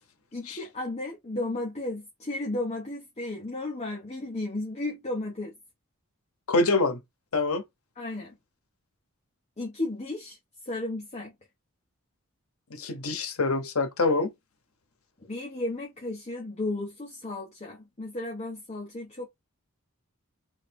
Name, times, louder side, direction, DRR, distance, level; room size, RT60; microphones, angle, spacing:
voice 1, 0.3-5.5 8.0-8.4 9.6-10.4 10.6-11.3 15.2-19.3, left 2 dB, 30° left, 0.9 m, -34 dB
voice 2, 6.5-7.0 7.3-7.6 12.7-14.3, left 3 dB, 80° left, 0.9 m, -25 dB
3.2 x 2.6 x 3.3 m
head